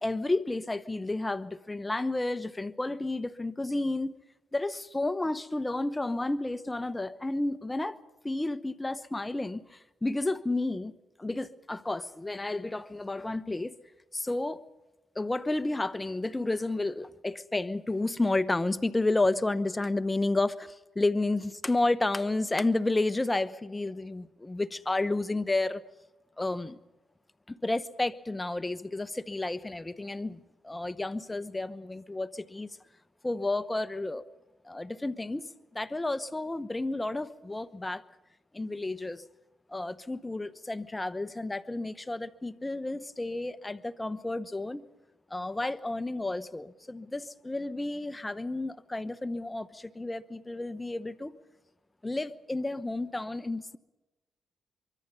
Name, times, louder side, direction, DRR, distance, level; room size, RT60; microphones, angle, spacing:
voice 1, 0.0-4.1 4.5-8.0 8.2-10.9 11.2-13.7 14.1-14.6 15.1-25.8 26.4-26.8 27.5-32.7 33.2-34.2 34.6-35.5 35.7-38.0 38.5-39.2 39.7-44.8 45.3-51.3 52.0-53.8, left 2 dB, 15° left, 13 dB, 1.0 m, -31 dB
24.0 x 24.0 x 5.6 m, 1.1 s
cardioid pair, 80°, 0 cm